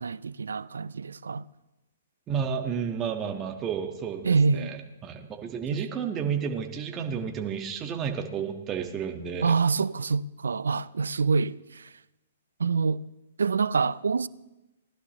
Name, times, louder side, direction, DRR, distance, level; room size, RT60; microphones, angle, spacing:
voice 1, 0.0-1.5 4.2-4.8 5.7-5.8 9.4-11.9 12.6-13.0 13.4-14.3, right 4 dB, 80° right, 0.4 m, -26 dB
voice 2, 2.3-9.5, right 7 dB, 25° right, 1.5 m, -31 dB
19.5 x 11.5 x 3.1 m
hypercardioid pair, 120°, 0 cm